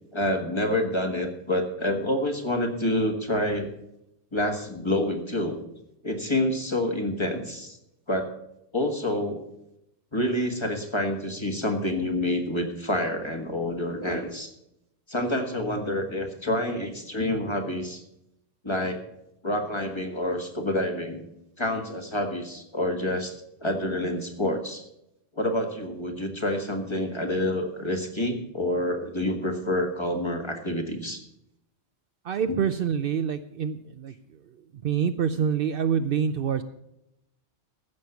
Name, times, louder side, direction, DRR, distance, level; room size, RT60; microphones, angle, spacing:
voice 1, 0.1-3.7 4.3-5.6 6.0-7.8 8.1-8.3 8.7-9.4 10.1-14.5 15.1-18.0 18.6-19.0 19.4-21.3 21.6-23.3 23.6-24.8 25.3-31.2, left 1 dB, 25° left, 3 dB, 1.6 m, -28 dB
voice 2, 32.2-36.6, right 7 dB, 60° right, 11 dB, 0.7 m, -27 dB
15.0 x 6.5 x 6.9 m, 0.82 s
omnidirectional pair, 1.1 m